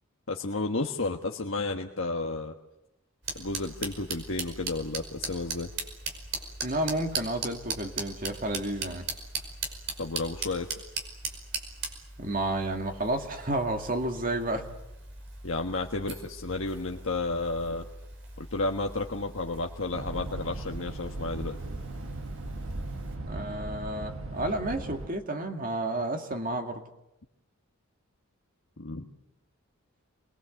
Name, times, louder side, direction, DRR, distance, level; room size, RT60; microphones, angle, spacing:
voice 1, 0.3-2.5 3.3-5.7 10.0-10.7 15.4-17.8 18.4-21.6 28.8-29.1, left 3 dB, 60° left, 2 dB, 1.5 m, -32 dB
sound 1, 3.2-23.2, right 4 dB, 55° right, 5.3 m, -39 dB
voice 2, 6.6-9.0 12.2-14.7 23.3-26.8, right 1 dB, 40° right, 4 dB, 2.2 m, -31 dB
sound 2, 19.9-25.1, right 2 dB, 70° right, 1.5 m, -38 dB
28.5 x 22.0 x 7.9 m, 0.89 s
head